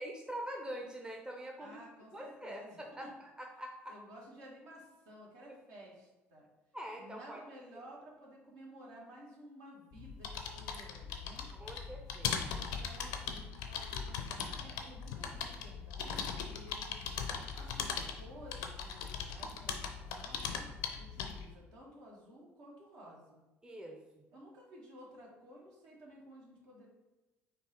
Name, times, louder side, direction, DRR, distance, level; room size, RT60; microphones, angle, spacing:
voice 1, 0.0-1.8 2.1-4.0 5.5-5.6 6.7-7.4 11.5-12.7 23.6-24.2, equal, 10° right, 1 dB, 0.7 m, -44 dB
voice 2, 1.6-3.1 3.9-6.5 7.0-11.5 12.5-20.7 21.0-23.4 24.3-26.9, equal, 60° right, -3 dB, 1.5 m, -54 dB
sound 1, 9.9-21.5, left 6 dB, 65° left, 0.5 m, -39 dB
4.5 x 2.8 x 4.2 m, 1.1 s
figure-of-eight pair, 55°, 7 cm